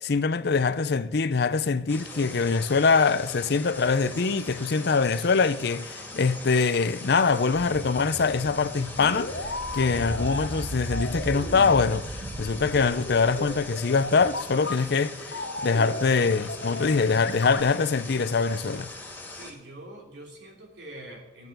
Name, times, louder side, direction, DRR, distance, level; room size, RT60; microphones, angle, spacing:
voice 1, 0.0-18.9, left 4 dB, 65° left, 0.6 m, -24 dB
sound 1, 1.9-19.5, left 2 dB, 10° left, 2.3 m, -41 dB
sound 2, 7.5-14.6, right 2 dB, 30° right, 0.5 m, -38 dB
sound 3, 8.6-10.5 10.9-11.9 12.7-15.1 15.3-16.0 16.3-17.6, left 2 dB, 90° left, 1.8 m, -35 dB
voice 2, 19.3-21.5, right 1 dB, 75° right, 3.2 m, -44 dB
8.9 x 8.2 x 9.2 m
head